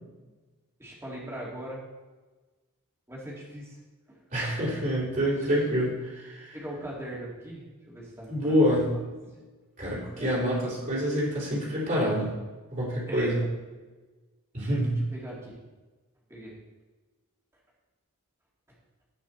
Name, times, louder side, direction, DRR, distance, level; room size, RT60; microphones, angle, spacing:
voice 1, 0.8-1.8 3.1-3.8 4.1-4.2 5.4-5.5 6.5-8.6 10.1-10.6 13.1-13.3 15.1-15.6 16.3-16.6, right 1 dB, 10° right, -5 dB, 2.9 m, -40 dB
voice 2, 4.3-6.6 8.3-8.9 9.8-12.3 12.7-13.4 14.5-15.0, equal, 40° right, -8 dB, 3.7 m, -27 dB
17.0 x 6.0 x 4.3 m, 1.2 s
head